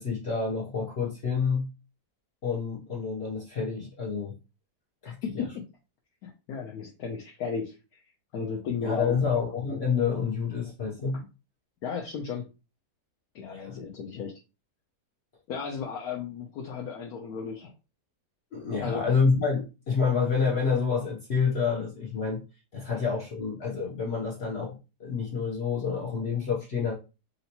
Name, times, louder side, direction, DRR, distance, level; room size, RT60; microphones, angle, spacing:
voice 1, 0.0-1.7 2.4-4.3 5.0-5.5 8.8-11.2 13.5-13.7 18.5-22.4 22.7-26.9, left 5 dB, 50° left, 0.9 m, -28 dB
voice 2, 5.0-5.6 6.2-8.0 8.3-9.2 11.1-11.3 11.8-12.5 13.3-14.3 15.5-17.7 18.8-19.1, left 6 dB, 70° left, 1.1 m, -35 dB
3.0 x 2.8 x 2.8 m
omnidirectional pair, 1.7 m